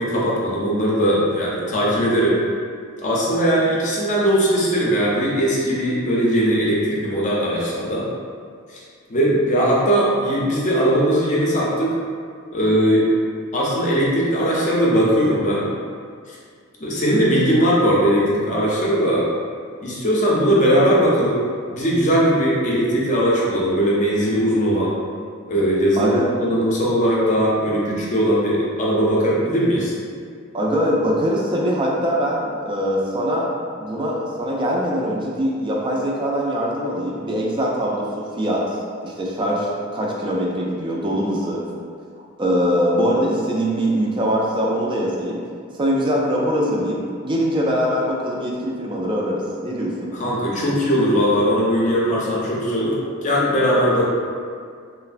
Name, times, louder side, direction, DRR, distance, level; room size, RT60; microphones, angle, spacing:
voice 1, 0.0-2.4 3.0-8.1 8.7-8.8 9.1-12.0 12.5-13.1 13.5-15.7 16.3-16.4 16.8-19.3 19.8-21.4 21.7-24.9 25.5-29.9 50.1-54.0, equal, 35° left, -5 dB, 0.5 m, -19 dB
voice 2, 30.5-38.8 39.0-41.6 42.4-45.4 45.7-50.1, equal, 25° right, -3 dB, 0.3 m, -22 dB
3.1 x 2.0 x 2.4 m, 2.1 s
head